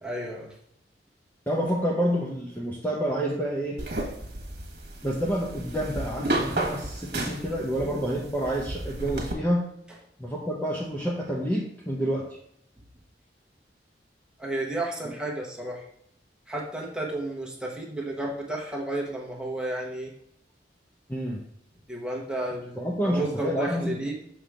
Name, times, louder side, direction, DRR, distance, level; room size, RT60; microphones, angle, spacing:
voice 1, 0.0-0.5 14.4-15.9 16.5-20.1 21.9-22.8 23.0-24.1, right 1 dB, 5° right, -2 dB, 1.2 m, -32 dB
voice 2, 1.5-3.8 5.0-9.7 10.2-12.3 15.0-15.1 21.1-21.4 22.8-24.1, equal, 10° left, -3 dB, 0.9 m, -28 dB
sound 1, 3.8-9.3, right 1 dB, 60° right, 1.5 m, -33 dB
6.3 x 5.8 x 3.4 m, 0.74 s
head